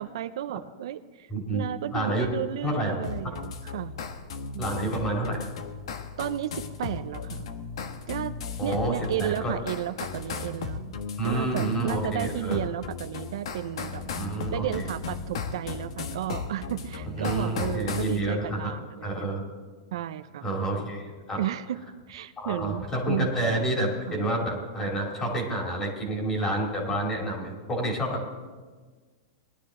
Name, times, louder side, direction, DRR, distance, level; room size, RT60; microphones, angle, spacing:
voice 1, 0.0-3.9 4.5-4.6 6.2-7.5 8.1-8.4 8.6-11.0 11.2-14.2 14.5-19.3 19.9-20.5 21.4-21.8 22.1-23.3 24.1-24.2, right 12 dB, 60° right, 11 dB, 0.5 m, -33 dB
voice 2, 1.3-1.6 1.9-2.3 2.6-3.0 4.6-5.5 8.6-9.5 11.2-12.6 14.1-14.9 17.2-18.7 19.0-19.4 20.4-21.4 22.4-28.2, right 1 dB, 15° left, -1 dB, 2.5 m, -29 dB
sound 1, 3.0-18.2, left 5 dB, 75° left, 1.2 m, -36 dB
19.5 x 12.0 x 3.7 m, 1.4 s
supercardioid pair, 175°, 3 cm